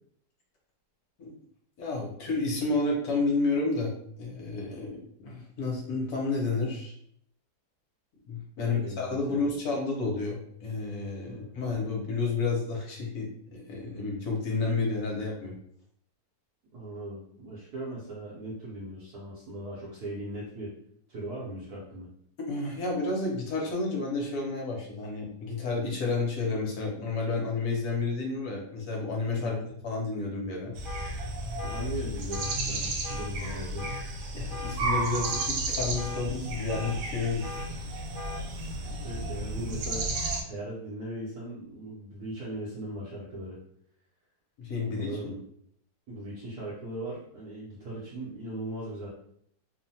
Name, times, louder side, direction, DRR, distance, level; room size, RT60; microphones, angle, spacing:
voice 1, 1.8-6.9 8.3-15.6 22.5-29.6 29.8-30.7 34.3-37.4 44.6-45.4, left 3 dB, 65° left, -1 dB, 1.1 m, -31 dB
voice 2, 8.6-9.4 11.3-11.5 16.7-20.7 21.1-22.1 29.4-29.6 31.6-33.9 37.7-37.8 38.6-40.1 40.4-43.6 44.8-45.3 46.1-49.1, right 1 dB, 65° right, -7 dB, 1.1 m, -39 dB
sound 1, 30.8-31.1 31.6-31.8 32.3-32.6 33.0-33.3 33.8-34.0 34.5-34.8 35.2-35.5 36.0-36.2 36.7-37.0 37.4-37.7 38.1-38.4, left 2 dB, 40° left, 0.7 m, -40 dB
sound 2, 30.8-40.4, right 2 dB, 85° right, 1.3 m, -33 dB
3.0 x 2.1 x 2.7 m, 0.68 s
omnidirectional pair, 2.0 m